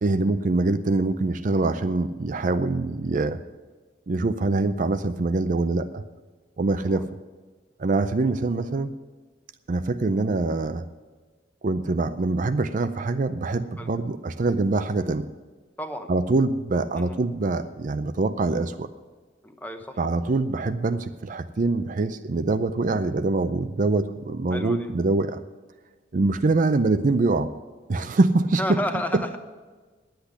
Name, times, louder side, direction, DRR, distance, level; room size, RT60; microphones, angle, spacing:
voice 1, 0.0-3.4 4.1-6.0 6.6-7.0 7.8-8.9 9.7-10.9 11.6-15.3 16.1-18.9 20.0-25.4 26.1-27.5 27.9-28.8, right 3 dB, 45° right, 10 dB, 0.5 m, -24 dB
voice 2, 15.8-16.2 16.9-17.2 19.4-20.0 24.5-24.9 28.6-29.4, equal, 10° left, 7 dB, 0.9 m, -32 dB
10.0 x 8.1 x 9.8 m, 1.4 s
head